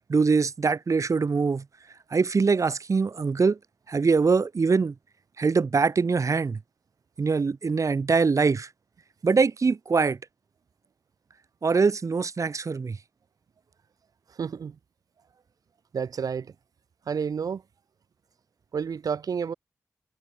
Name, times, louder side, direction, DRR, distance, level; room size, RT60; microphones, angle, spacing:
voice 1, 0.1-1.6 2.1-3.6 3.9-4.9 5.4-6.6 7.2-8.7 9.2-10.2 11.6-13.0, right 4 dB, 60° right, 1.3 m, -23 dB
voice 2, 14.4-14.8 15.9-16.5 17.1-17.6 18.7-19.5, right 6 dB, 80° right, 1.9 m, -30 dB
cardioid pair, 40°, 6 cm